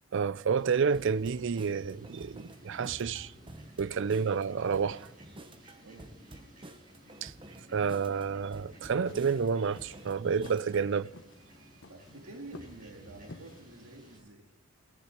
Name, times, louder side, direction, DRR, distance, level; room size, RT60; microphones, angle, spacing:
voice 1, 0.1-3.3 3.8-5.1 7.2-7.3 7.7-11.1, right 6 dB, 65° right, 0.5 m, -29 dB
Fowl, 0.6-14.2, equal, 45° right, 7.8 m, -55 dB
sound 1, 0.9-10.9, right 1 dB, 25° right, 0.9 m, -50 dB
voice 2, 5.8-6.1 11.6-14.5, right 2 dB, 90° right, 1.9 m, -49 dB
sound 2, 8.7-13.6, left 2 dB, 65° left, 1.2 m, -52 dB
15.0 x 10.5 x 8.2 m
head